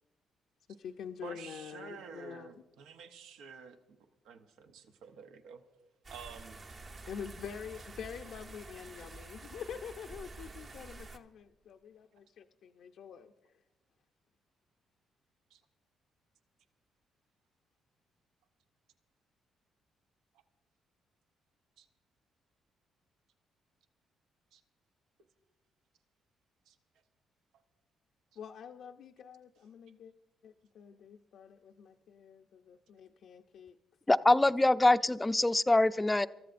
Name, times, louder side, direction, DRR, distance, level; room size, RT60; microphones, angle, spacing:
voice 1, 0.7-2.5 7.1-13.3 28.4-30.1 30.4-33.8 34.1-34.5, left 7 dB, 70° left, 4 dB, 0.5 m, -46 dB
voice 2, 1.2-3.8 4.2-5.6 6.1-6.6 15.5-15.6 21.8-21.9 24.5-24.6 26.7-26.8, right 6 dB, 85° right, 7 dB, 0.8 m, -49 dB
sound 1, 6.0-11.2, right 3 dB, 45° right, 1.0 m, -49 dB
voice 3, 34.1-36.3, left 2 dB, 15° left, 13 dB, 0.4 m, -24 dB
27.0 x 14.0 x 2.5 m, 1.1 s
supercardioid pair, 65°, 0 cm